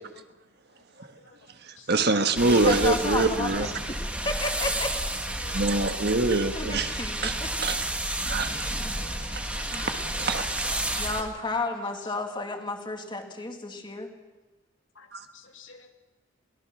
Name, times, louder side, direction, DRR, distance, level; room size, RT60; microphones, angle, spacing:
voice 1, 1.6-3.7 5.5-6.9 7.2-7.3 7.6-7.8 8.2-8.5 9.4-9.5 10.2-10.4 15.1-15.2, right 3 dB, 60° right, 8 dB, 1.4 m, -24 dB
sound 1, 2.4-11.2, right 1 dB, 5° right, 1.4 m, -31 dB
voice 2, 2.5-4.9 6.6-7.5 9.7-10.1 11.0-14.1, left 2 dB, 25° left, 4 dB, 2.2 m, -32 dB
voice 3, 8.5-10.1 15.0-15.1 15.3-15.9, left 4 dB, 90° left, 5 dB, 2.1 m, -50 dB
23.0 x 18.5 x 6.2 m, 1.2 s
head